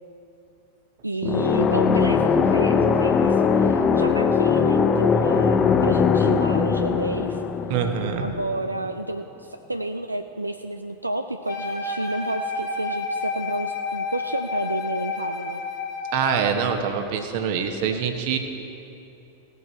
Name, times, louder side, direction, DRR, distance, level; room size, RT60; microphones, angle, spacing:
voice 1, 1.0-7.4 8.2-15.6, right 2 dB, 85° right, 7 dB, 0.3 m, -30 dB
sound 1, 1.2-8.9, left 6 dB, 25° left, 0.5 m, -20 dB
voice 2, 7.7-8.3 16.1-18.4, right 7 dB, 45° right, 6 dB, 1.0 m, -24 dB
Wind instrument woodwind instrument, 11.5-16.5, left 4 dB, 40° left, 1.7 m, -30 dB
17.5 x 7.2 x 4.3 m, 2.8 s
figure-of-eight pair, 90°, 0 cm